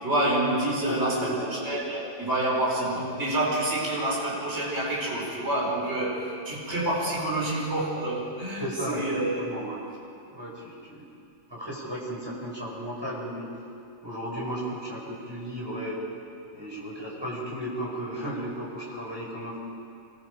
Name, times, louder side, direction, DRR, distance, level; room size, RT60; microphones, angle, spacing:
voice 1, 0.0-9.4, right 1 dB, 30° right, -4 dB, 4.8 m, -28 dB
voice 2, 0.8-1.5 8.6-9.8 10.3-11.1 11.5-13.5 14.0-16.0 16.5-19.6, equal, 10° right, -5 dB, 6.0 m, -35 dB
26.0 x 22.0 x 5.0 m, 2.5 s
omnidirectional pair, 2.2 m